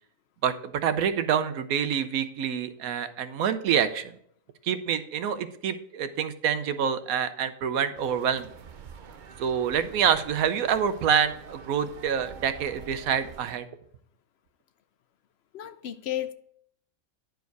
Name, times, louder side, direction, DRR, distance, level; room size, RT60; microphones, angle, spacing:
voice 1, 0.4-4.2 4.6-8.5 9.4-13.7, right 8 dB, 80° right, 1.1 m, -27 dB
sound 1, 7.9-13.6, right 6 dB, 55° right, 0.5 m, -46 dB
voice 2, 15.5-16.3, left 12 dB, 65° left, 0.7 m, -33 dB
10.5 x 4.8 x 4.7 m
omnidirectional pair, 1.5 m